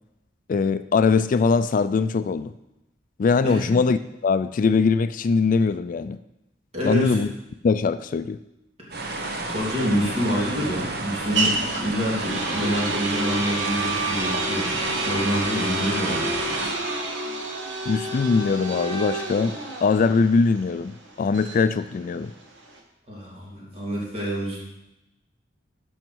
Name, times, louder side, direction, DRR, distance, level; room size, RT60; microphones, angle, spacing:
voice 1, 0.5-2.5 3.2-4.0 4.2-6.2 6.8-7.3 7.6-8.4 17.9-22.3, left 4 dB, 45° left, 12 dB, 0.3 m, -21 dB
voice 2, 3.4-3.7 6.7-7.2 8.8-9.1 9.5-14.7 15.1-16.3 23.1-24.6, equal, 35° right, -4 dB, 2.9 m, -27 dB
sound 1, 8.9-16.7, right 2 dB, 60° right, 1.1 m, -31 dB
sound 2, 9.0-22.8, right 2 dB, 85° right, 1.7 m, -29 dB
11.5 x 6.4 x 4.6 m, 0.92 s
head